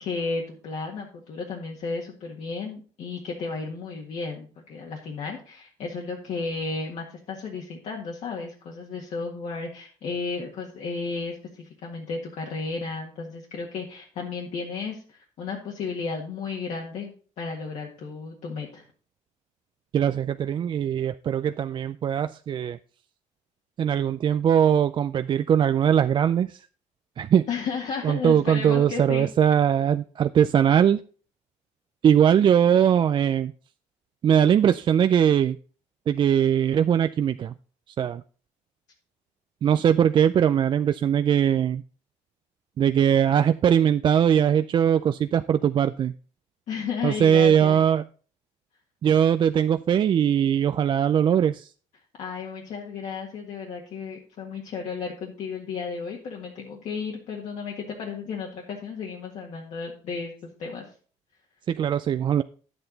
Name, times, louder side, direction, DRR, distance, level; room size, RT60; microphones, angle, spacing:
voice 1, 0.0-18.8 27.5-29.3 39.8-39.9 46.7-47.8 52.2-60.9, left 4 dB, 60° left, -2 dB, 1.8 m, -33 dB
voice 2, 19.9-22.8 23.8-26.6 27.2-27.4 28.0-31.0 32.0-33.5 34.2-35.6 36.1-37.5 38.0-38.2 39.6-41.8 42.8-46.1 47.0-48.0 49.0-51.7 61.7-62.4, right 9 dB, 35° right, 10 dB, 0.3 m, -21 dB
10.5 x 7.9 x 4.0 m, 0.40 s
cardioid pair, 140°, 13 cm